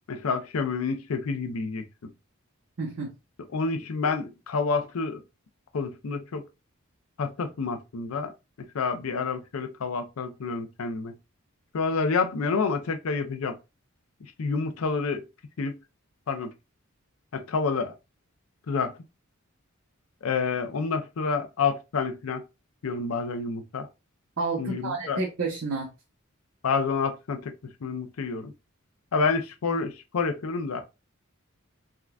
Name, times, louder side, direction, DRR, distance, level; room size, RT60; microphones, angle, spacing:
voice 1, 0.1-2.1 3.5-5.2 5.7-6.4 7.2-8.3 8.7-11.1 11.7-13.6 14.4-15.2 15.6-15.8 16.3-16.5 17.3-18.0 18.7-18.9 20.2-22.4 22.8-23.9 24.6-25.2 26.6-27.5 27.8-28.5 29.1-30.8, left 4 dB, 90° left, 0.5 m, -28 dB
voice 2, 2.8-3.1 24.4-25.9, right 3 dB, 70° right, 0.8 m, -30 dB
3.6 x 2.3 x 2.3 m
head